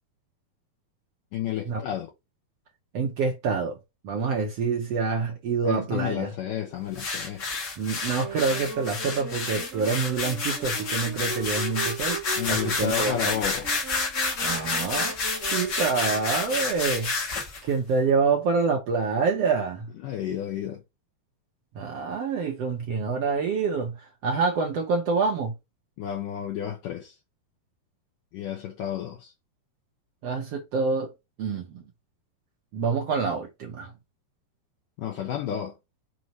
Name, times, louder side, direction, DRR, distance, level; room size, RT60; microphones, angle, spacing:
voice 1, 1.3-2.1 5.6-7.4 12.4-13.8 20.0-20.8 26.0-27.2 28.3-29.3 35.0-35.8, left 10 dB, 70° left, 2.3 m, -31 dB
voice 2, 2.9-3.8 4.0-6.3 7.8-12.2 12.5-13.1 14.4-15.2 15.4-17.1 17.6-19.9 21.7-23.9 24.2-25.5 30.2-31.1 31.4-31.8 32.7-33.9, right 4 dB, 80° right, 1.4 m, -26 dB
sound 1, 7.0-17.6, left 3 dB, 40° left, 1.6 m, -29 dB
sound 2, 8.1-16.6, right 3 dB, 40° right, 1.1 m, -39 dB
6.5 x 2.9 x 5.3 m
omnidirectional pair, 4.6 m